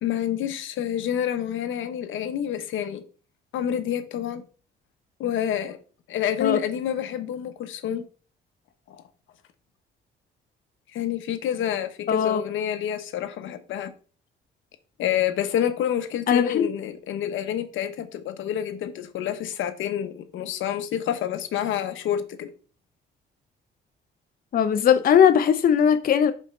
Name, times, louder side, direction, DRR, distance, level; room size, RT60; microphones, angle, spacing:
voice 1, 0.0-3.0 3.5-4.4 5.2-5.8 6.1-8.0 8.9-9.0 10.9-13.9 15.0-22.5, left 10 dB, 80° left, 0.9 m, -28 dB
voice 2, 12.1-12.4 16.3-16.7 24.5-26.3, left 8 dB, 45° left, 0.5 m, -19 dB
5.4 x 4.2 x 5.3 m
cardioid pair, 90°, 20 cm